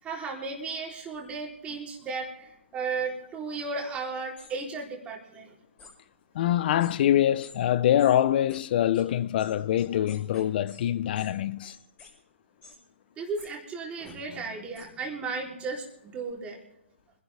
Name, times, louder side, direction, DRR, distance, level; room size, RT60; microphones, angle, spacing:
voice 1, 0.0-5.5 13.2-16.6, right 4 dB, 15° right, 3.6 m, -35 dB
sound 1, 4.4-4.5 5.8-5.9 6.8-6.9 7.4-7.6 8.0-8.1 8.5-8.6 8.9-9.0 9.4-10.8 11.2-11.3 11.6-12.1 12.6-12.8 13.4-13.5 14.1-14.2 14.7-14.9, left 4 dB, 20° left, 6.3 m, -50 dB
voice 2, 6.3-11.7, left 11 dB, 45° left, 0.7 m, -24 dB
25.0 x 11.0 x 3.5 m
hypercardioid pair, 145°, 7 cm